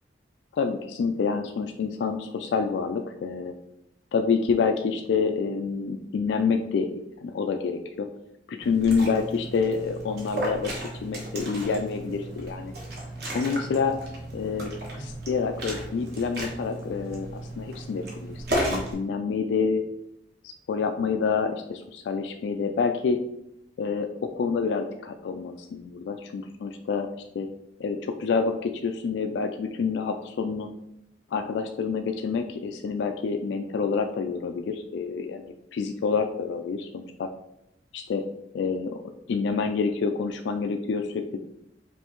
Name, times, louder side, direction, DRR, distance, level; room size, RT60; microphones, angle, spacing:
voice 1, 0.5-3.5 4.1-6.9 7.2-8.1 8.5-10.7 11.0-12.7 13.3-14.0 14.3-19.8 20.4-23.2 23.8-27.1 27.3-27.5 27.8-30.7 31.3-37.3 37.9-38.2 38.5-39.0 39.3-41.4, left 5 dB, 75° left, 6 dB, 0.3 m, -27 dB
Liquid, 8.6-18.9, right 1 dB, 60° right, 1.2 m, -34 dB
5.3 x 2.7 x 3.0 m, 0.80 s
head